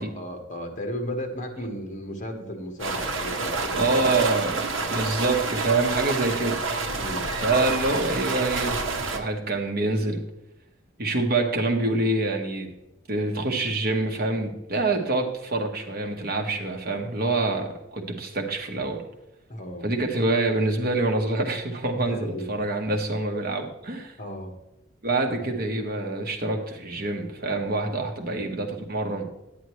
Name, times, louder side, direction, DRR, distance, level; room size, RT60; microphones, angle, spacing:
voice 1, 0.0-4.2 4.7-4.9 7.0-7.3 19.5-19.9 22.0-22.6 24.2-24.5 25.3-25.5, equal, 40° left, 4 dB, 1.3 m, -35 dB
sound 1, 2.8-9.2, right 3 dB, 75° right, 1.0 m, -28 dB
voice 2, 3.8-6.6 6.9-7.0 7.4-8.8 9.1-10.2 11.0-12.7 13.1-19.0 19.8-24.2 25.0-29.3, right 2 dB, 50° right, 3 dB, 1.2 m, -26 dB
10.0 x 9.4 x 3.1 m, 0.90 s
head